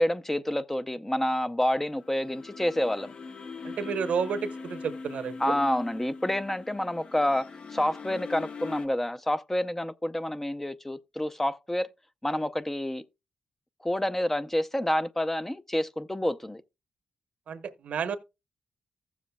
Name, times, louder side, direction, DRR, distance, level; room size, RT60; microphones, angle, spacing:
voice 1, 0.0-3.1 5.4-11.9 12.2-13.0 13.8-16.6, left 1 dB, 15° left, 0.5 m, -28 dB
sound 1, 1.9-8.9, left 4 dB, 55° left, 0.8 m, -41 dB
voice 2, 3.6-5.6 17.5-18.2, right 6 dB, 75° right, 0.9 m, -31 dB
15.0 x 7.2 x 2.2 m
cardioid pair, 65°, 2 cm